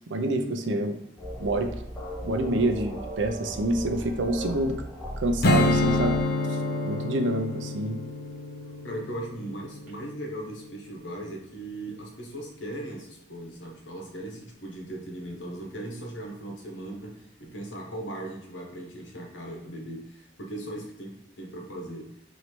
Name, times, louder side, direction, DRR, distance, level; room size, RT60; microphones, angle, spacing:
voice 1, 0.1-1.0 1.4-1.7 2.2-4.7 5.2-6.2 6.5-6.6 6.8-8.0, right 1 dB, 85° right, 6 dB, 0.6 m, -27 dB
sound 1, 0.6-1.7 2.0-9.9, right 10 dB, 10° right, 1.5 m, -47 dB
sound 2, 1.2-6.2, equal, 5° left, 0.6 m, -36 dB
Strum, 5.4-10.8, left 2 dB, 55° left, 0.4 m, -28 dB
voice 2, 8.8-22.1, right 1 dB, 85° left, 0 dB, 1.1 m, -38 dB
3.2 x 2.8 x 4.3 m, 0.81 s
head